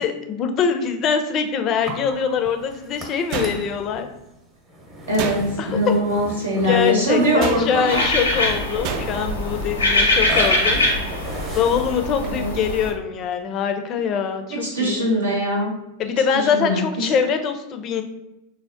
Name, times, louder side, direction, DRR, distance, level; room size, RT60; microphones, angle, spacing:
voice 1, 0.0-4.1 5.6-5.9 6.6-10.8 11.5-15.0 16.0-18.0, left 7 dB, 40° left, 6 dB, 0.4 m, -23 dB
Burping eructation, 1.8-12.5, equal, 25° right, 0.8 m, -36 dB
sound 1, 3.3-4.0 5.1-5.8 7.4-8.0 8.8-9.4, right 6 dB, 50° right, 0.4 m, -29 dB
voice 2, 5.1-8.1 9.9-10.1 12.2-12.5 14.5-15.7 16.1-17.1, equal, 85° right, -3 dB, 1.0 m, -22 dB
sound 2, 7.9-12.9, left 1 dB, 90° left, 0.6 m, -22 dB
3.4 x 2.0 x 2.5 m, 0.92 s
hypercardioid pair, 90°, 0 cm